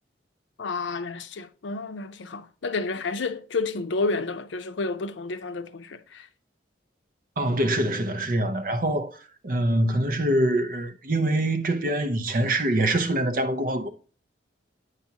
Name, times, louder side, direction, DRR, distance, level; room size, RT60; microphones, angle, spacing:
voice 1, 0.6-6.3, left 3 dB, 80° left, 0.6 m, -30 dB
voice 2, 7.4-9.2 9.4-13.9, right 1 dB, 50° right, 0.7 m, -24 dB
8.1 x 5.8 x 2.8 m
head